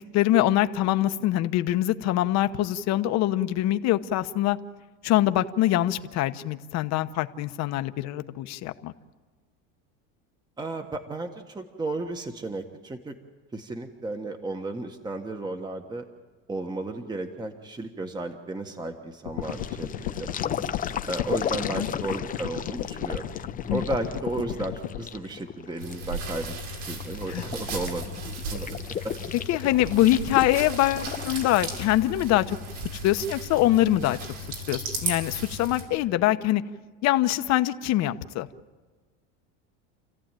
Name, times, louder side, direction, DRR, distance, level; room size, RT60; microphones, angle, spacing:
voice 1, 0.1-4.6 5.0-8.9 21.6-21.9 23.7-23.8 27.3-27.4 29.5-32.6 33.0-34.2 34.7-36.6 37.0-38.5, left 14 dB, 50° left, 10 dB, 1.1 m, -24 dB
voice 2, 10.6-13.1 13.5-16.0 16.5-20.4 21.1-23.3 23.7-26.5 26.8-28.8 29.0-29.1, right 2 dB, 10° right, 5 dB, 1.3 m, -34 dB
sound 1, 19.2-25.0, left 12 dB, 80° left, 1.6 m, -34 dB
sound 2, 19.4-31.6, left 8 dB, 25° left, 0.8 m, -36 dB
sound 3, 25.8-35.8, right 2 dB, 85° right, 6.9 m, -35 dB
29.0 x 15.0 x 9.1 m, 1.4 s
supercardioid pair, 135°, 35 cm